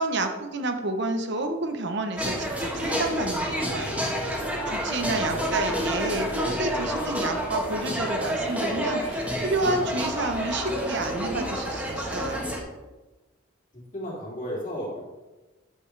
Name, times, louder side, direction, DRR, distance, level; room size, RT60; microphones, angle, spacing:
voice 1, 0.0-4.1 4.3-12.4, right 2 dB, 55° right, 6 dB, 1.0 m, -30 dB
sound 1, 2.2-12.6, equal, 5° right, 1.4 m, -29 dB
voice 2, 5.3-5.9 13.7-15.0, equal, 40° left, -6 dB, 2.8 m, -35 dB
9.9 x 7.7 x 3.4 m, 1.1 s
head